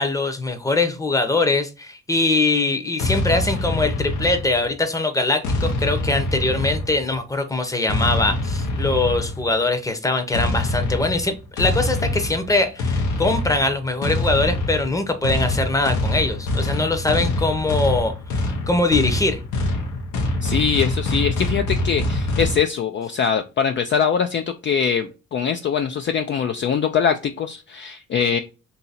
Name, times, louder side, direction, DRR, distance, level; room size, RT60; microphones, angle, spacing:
voice 1, 0.0-19.4, left 2 dB, 10° left, 0.7 m, -22 dB
sound 1, 3.0-4.8 5.4-7.2 7.9-9.5 10.3-22.6, left 1 dB, 85° left, 0.9 m, -24 dB
voice 2, 20.4-28.4, left 7 dB, 40° left, 0.4 m, -22 dB
2.8 x 2.7 x 4.0 m
cardioid pair, 90°, 30 cm